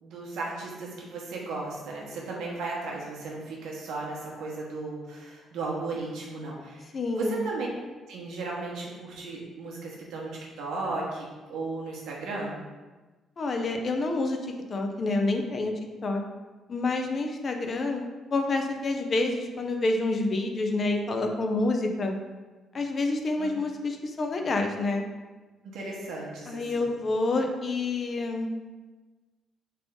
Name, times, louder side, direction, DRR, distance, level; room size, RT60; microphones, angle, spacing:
voice 1, 0.0-6.9 7.2-7.7 8.1-10.3 10.6-12.6 23.4-23.5 25.6-26.9, right 3 dB, 85° right, -3 dB, 1.0 m, -35 dB
voice 2, 6.9-7.4 13.4-15.7 16.0-16.2 16.7-18.1 18.3-22.2 22.7-25.0 26.5-28.5, left 2 dB, 45° left, 4 dB, 0.5 m, -28 dB
3.6 x 3.4 x 3.5 m, 1.3 s
cardioid pair, 90°, 0 cm